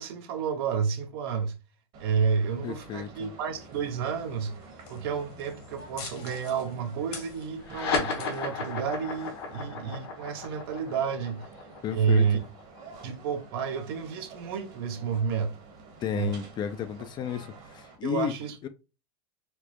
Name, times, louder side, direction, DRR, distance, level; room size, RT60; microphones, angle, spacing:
voice 1, 0.0-1.5 2.0-4.6 4.9-11.5 11.9-12.4 13.0-15.5 16.1-16.3 18.0-18.6, right 6 dB, 70° right, 0.7 m, -30 dB
sound 1, 1.9-18.0, right 3 dB, 50° right, 1.3 m, -50 dB
voice 2, 2.6-3.3 11.8-12.4 16.0-18.3 18.6-18.7, left 8 dB, 35° left, 0.4 m, -33 dB
sound 2, 3.5-9.6, left 6 dB, 50° left, 1.1 m, -48 dB
sound 3, 7.6-14.4, left 4 dB, 75° left, 1.3 m, -35 dB
4.3 x 2.0 x 2.9 m
hypercardioid pair, 105°, 13 cm